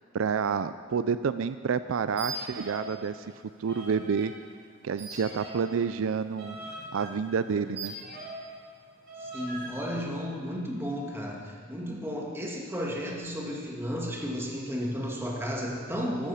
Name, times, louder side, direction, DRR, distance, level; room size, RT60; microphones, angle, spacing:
voice 1, 0.0-3.3 3.6-4.3 4.8-6.6 6.9-7.9, right 6 dB, 75° right, 12 dB, 0.4 m, -29 dB
sound 1, 2.1-3.0 3.2-4.3 5.0-8.5 9.1-9.8, right 2 dB, 55° right, 2.5 m, -41 dB
voice 2, 9.2-16.3, equal, 10° right, -2 dB, 2.1 m, -33 dB
14.0 x 13.5 x 5.7 m, 2.2 s
head